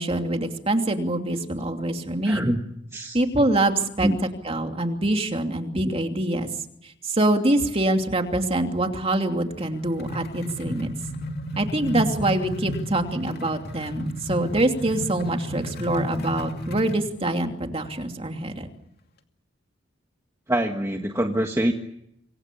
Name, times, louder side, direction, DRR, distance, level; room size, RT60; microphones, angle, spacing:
voice 1, 0.0-2.5 3.1-4.1 4.4-6.5 6.8-10.9 11.6-18.7, right 1 dB, 30° right, 4 dB, 2.8 m, -25 dB
voice 2, 2.2-2.6 2.9-3.2 4.0-4.2 20.5-21.7, right 1 dB, 15° right, 3 dB, 1.6 m, -24 dB
sound 1, 9.5-17.1, equal, 55° left, 2.4 m, -32 dB
28.0 x 24.5 x 7.0 m, 0.76 s
head